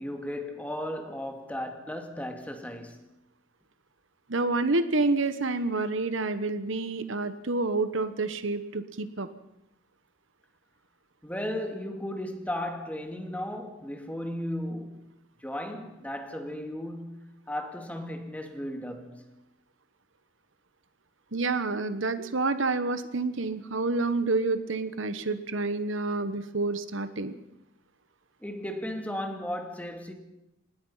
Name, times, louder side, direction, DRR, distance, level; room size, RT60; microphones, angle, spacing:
voice 1, 0.0-3.0 11.2-15.1 15.4-19.3 28.4-30.1, left 1 dB, 5° left, 2.3 m, -35 dB
voice 2, 4.3-9.3 21.3-27.3, right 3 dB, 65° right, 1.2 m, -28 dB
26.0 x 19.5 x 5.7 m
head